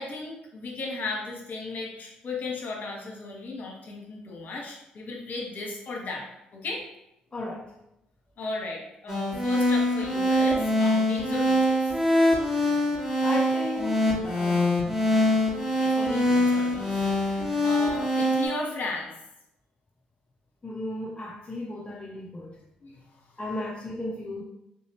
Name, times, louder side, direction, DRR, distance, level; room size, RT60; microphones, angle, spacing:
voice 1, 0.0-6.3 6.5-6.8 8.4-12.0 15.6-16.9 17.2-19.1 22.8-23.0 23.3-23.4, left 3 dB, 50° left, -1 dB, 1.1 m, -36 dB
voice 2, 7.3-7.7 13.2-15.0 20.6-22.6 23.4-24.4, left 2 dB, 30° left, -2 dB, 0.5 m, -35 dB
sound 1, 9.1-18.5, left 1 dB, 15° right, 1.5 m, -24 dB
3.7 x 2.8 x 2.9 m, 0.85 s
hypercardioid pair, 50°, 4 cm